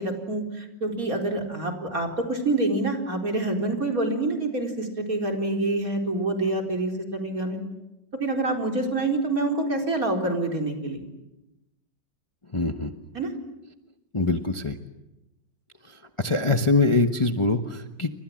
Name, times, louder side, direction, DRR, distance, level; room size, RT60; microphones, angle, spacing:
voice 1, 0.0-7.6 8.2-11.1 13.1-13.3 14.2-14.3, right 2 dB, 50° right, 2 dB, 4.8 m, -27 dB
voice 2, 12.5-12.9 14.1-14.8 16.2-18.1, left 3 dB, 20° left, 6 dB, 1.1 m, -23 dB
29.5 x 25.5 x 7.7 m, 0.95 s
omnidirectional pair, 1.9 m